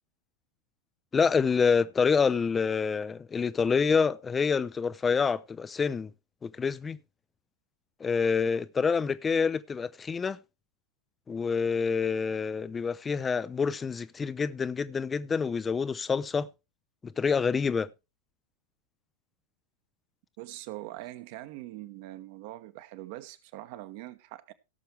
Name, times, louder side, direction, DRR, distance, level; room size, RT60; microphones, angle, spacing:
voice 1, 1.1-6.1 6.4-7.0 8.0-10.4 11.3-16.5 17.0-17.9, left 5 dB, 15° left, 0.4 m, -27 dB
voice 2, 20.4-24.5, right 16 dB, 50° right, 1.0 m, -42 dB
17.0 x 6.8 x 3.3 m
figure-of-eight pair, 90°, 0 cm